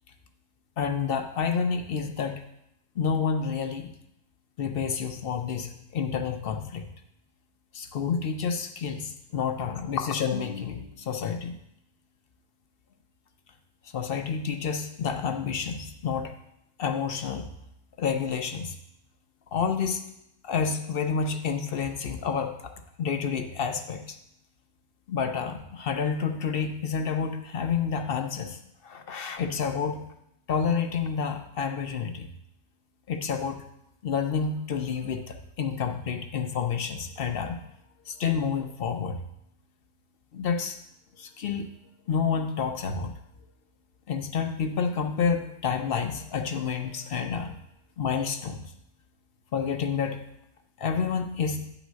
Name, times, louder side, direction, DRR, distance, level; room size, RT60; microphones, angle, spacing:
voice 1, 0.8-2.4 3.0-3.9 4.6-6.9 7.7-11.6 13.9-16.3 16.8-17.5 18.0-18.8 19.5-20.0 20.4-22.5 23.0-24.2 25.1-30.0 30.5-32.3 33.1-33.6 34.0-37.6 38.1-39.2 40.3-40.8 41.2-41.7 42.1-43.1 44.1-47.6 48.0-48.6 49.5-50.2 50.8-51.6, left 6 dB, 55° left, 6 dB, 0.8 m, -29 dB
9.3 x 4.0 x 6.2 m, 0.79 s
omnidirectional pair, 1.3 m